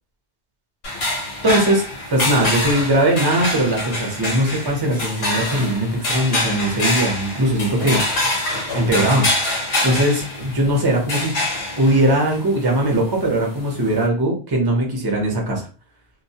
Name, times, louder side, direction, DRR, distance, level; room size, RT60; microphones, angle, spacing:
sound 1, 0.8-14.1, left 1 dB, 65° left, 1.1 m, -25 dB
voice 1, 1.4-1.8 2.1-8.3 8.7-9.3 9.8-11.4 11.8-15.7, right 1 dB, 25° right, 0 dB, 0.6 m, -20 dB
2.3 x 2.1 x 2.7 m, 0.36 s
omnidirectional pair, 1.2 m